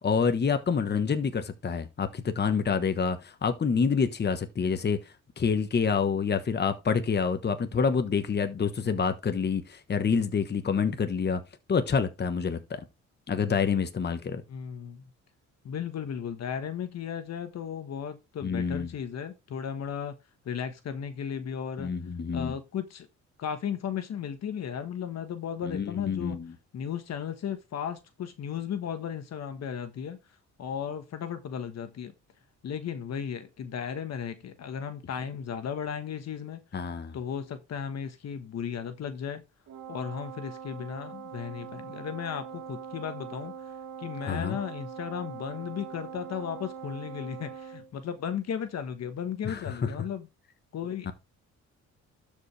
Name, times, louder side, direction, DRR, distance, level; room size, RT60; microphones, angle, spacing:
voice 1, 0.0-5.0 5.4-11.4 11.7-12.8 13.3-14.4 18.4-18.9 21.8-22.5 25.6-26.5 36.7-37.2 44.3-44.6 49.4-49.9 51.0-51.1, left 6 dB, 35° left, 1.2 m, -27 dB
voice 2, 14.5-15.1 15.6-20.2 20.4-21.9 22.3-23.1 23.4-26.4 26.7-30.2 30.6-32.1 32.6-36.6 37.1-39.4 39.9-43.5 44.0-50.3 50.7-51.1, left 8 dB, 60° left, 1.3 m, -35 dB
Wind instrument woodwind instrument, 39.7-47.9, right 7 dB, 70° right, 2.1 m, -42 dB
12.0 x 5.2 x 3.3 m
cardioid pair, 90°, 30 cm